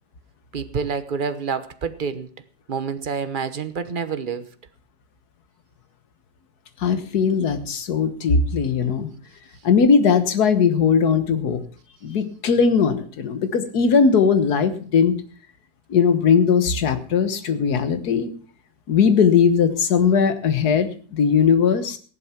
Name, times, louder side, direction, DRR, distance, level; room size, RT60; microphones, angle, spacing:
voice 1, 0.5-2.3 2.7-4.5, right 6 dB, 35° right, 11 dB, 0.9 m, -27 dB
voice 2, 6.8-9.1 9.6-11.6 12.0-15.2 15.9-18.3 18.9-22.0, left 6 dB, 65° left, 10 dB, 1.8 m, -19 dB
14.5 x 11.0 x 5.9 m, 0.43 s
omnidirectional pair, 1.8 m